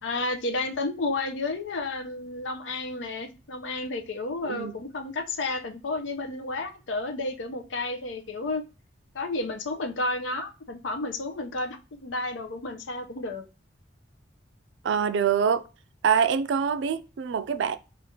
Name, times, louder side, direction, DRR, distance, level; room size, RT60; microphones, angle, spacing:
voice 1, 0.0-8.6 9.1-13.4, left 2 dB, 90° left, 0.6 m, -31 dB
voice 2, 4.4-4.8 14.8-15.6 16.0-17.8, right 7 dB, 75° right, 0.3 m, -25 dB
5.0 x 2.4 x 2.8 m
head